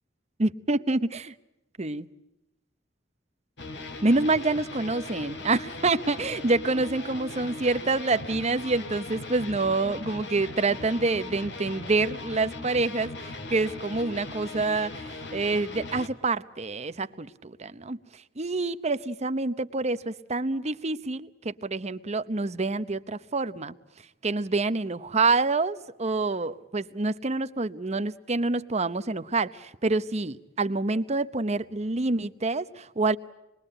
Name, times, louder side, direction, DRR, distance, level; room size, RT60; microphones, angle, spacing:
voice 1, 0.4-1.3 1.8-2.1 4.0-23.7 24.2-33.2, right 3 dB, 35° right, 12 dB, 0.9 m, -27 dB
sound 1, 3.6-16.1, left 2 dB, 65° left, 2.3 m, -39 dB
27.0 x 22.0 x 8.9 m, 0.93 s
head